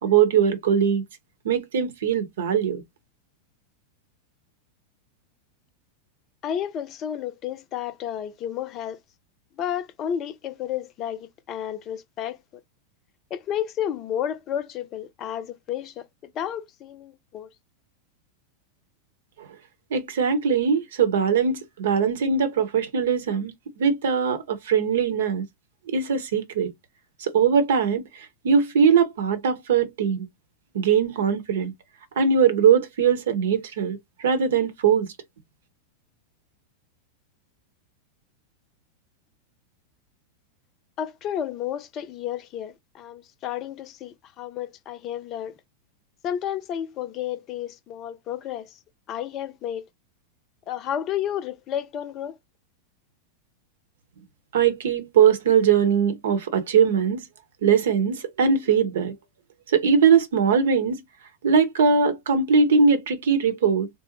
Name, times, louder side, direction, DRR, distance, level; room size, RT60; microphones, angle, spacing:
voice 1, 0.0-1.0 1.4-2.8 19.4-19.5 19.9-25.5 25.9-26.7 27.2-30.3 30.7-31.7 32.2-35.1 54.5-57.2 57.6-59.1 59.7-61.0 61.4-63.9, right 6 dB, 60° right, 0.9 m, -21 dB
voice 2, 6.4-9.0 9.6-12.4 13.3-17.5 41.0-45.5 46.2-48.8 49.1-49.9 50.7-52.4, left 10 dB, 35° left, 0.6 m, -31 dB
3.9 x 2.1 x 2.9 m
figure-of-eight pair, 90°, 0 cm